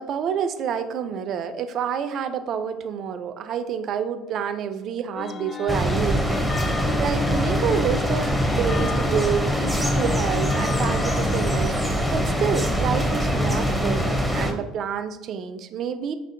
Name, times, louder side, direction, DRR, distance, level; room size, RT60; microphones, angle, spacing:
voice 1, 0.0-6.4 6.7-16.1, right 7 dB, 55° right, 10 dB, 0.3 m, -28 dB
sound 1, 5.2-11.5, left 6 dB, 35° left, 0.3 m, -34 dB
sound 2, 5.7-14.5, equal, 5° right, 0.6 m, -23 dB
5.3 x 2.5 x 2.6 m, 1.0 s
hypercardioid pair, 65°, 0 cm